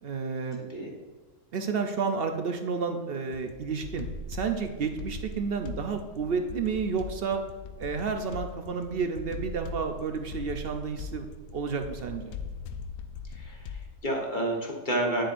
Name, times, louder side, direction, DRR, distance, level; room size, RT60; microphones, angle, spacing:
voice 1, 0.0-0.6 1.5-7.4 7.8-11.3 11.5-12.4, right 5 dB, 60° right, 5 dB, 0.6 m, -31 dB
voice 2, 0.6-0.9 13.3-15.2, right 1 dB, 35° left, 0 dB, 1.2 m, -30 dB
sound 1, 3.3-14.0, left 4 dB, 80° left, 1.1 m, -40 dB
8.8 x 7.5 x 2.5 m, 1.3 s
omnidirectional pair, 1.5 m